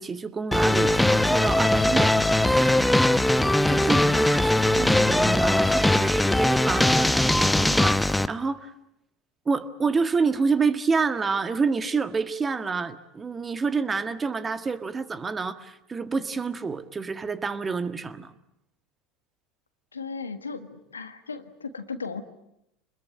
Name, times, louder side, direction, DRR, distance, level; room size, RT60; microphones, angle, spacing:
voice 1, 0.0-3.2 3.7-8.7 9.5-18.3, right 4 dB, 20° right, 10 dB, 1.7 m, -28 dB
sound 1, 0.5-8.3, left 1 dB, 5° left, 0.9 m, -20 dB
voice 2, 19.9-22.2, left 5 dB, 85° left, 9 dB, 1.6 m, -36 dB
27.5 x 21.5 x 8.5 m, 0.82 s
figure-of-eight pair, 75°, 0 cm